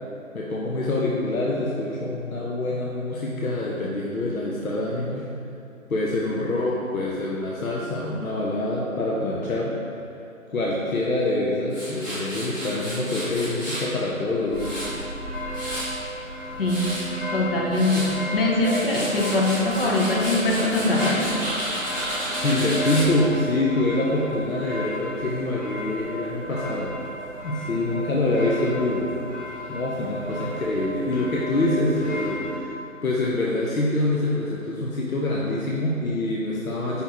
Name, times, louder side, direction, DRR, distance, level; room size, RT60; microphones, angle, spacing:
voice 1, 0.3-5.3 5.9-9.8 10.5-15.0 22.4-26.9 27.4-29.1 29.7-32.7 33.0-37.0, left 2 dB, 75° left, -4 dB, 0.9 m, -25 dB
Tools, 11.7-13.9 14.3-16.0 16.4-17.0 17.5-18.1 18.5-23.1, equal, 15° left, 1.2 m, -32 dB
sound 1, 14.5-32.6, equal, 30° right, 1.2 m, -34 dB
voice 2, 16.6-16.9 17.3-21.3, left 2 dB, 40° left, -2 dB, 1.0 m, -22 dB
5.5 x 4.6 x 4.4 m, 2.6 s
figure-of-eight pair, 155°, 42 cm